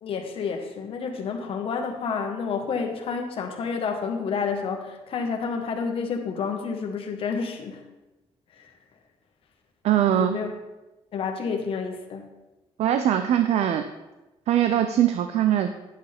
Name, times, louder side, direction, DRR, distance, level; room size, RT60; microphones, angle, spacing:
voice 1, 0.0-7.8 8.6-8.7 10.1-10.5 11.1-12.3, left 5 dB, 60° left, 3 dB, 1.3 m, -29 dB
voice 2, 9.8-10.4 12.8-13.8 14.5-15.8, right 10 dB, 80° right, 8 dB, 0.5 m, -21 dB
10.0 x 8.0 x 3.5 m, 1.0 s
cardioid pair, 140°, 11 cm